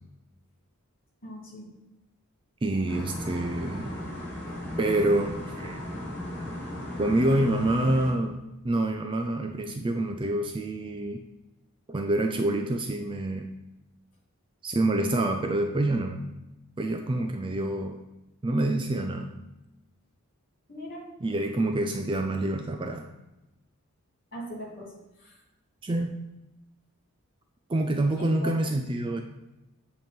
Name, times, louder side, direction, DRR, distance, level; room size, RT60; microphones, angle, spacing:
voice 1, 1.2-1.7 4.5-4.6 20.7-21.1 24.3-24.9 25.2-25.4 28.2-28.8, equal, 40° left, -4 dB, 2.4 m, -40 dB
voice 2, 2.6-3.9 4.8-5.8 7.0-11.2 11.9-13.5 14.6-16.2 16.8-18.0 18.4-19.3 21.2-23.1 25.8-26.1 27.7-29.2, right 1 dB, 20° right, 4 dB, 0.4 m, -27 dB
sound 1, 2.9-8.1, left 1 dB, 5° left, 1.6 m, -36 dB
9.0 x 3.0 x 5.1 m, 0.97 s
head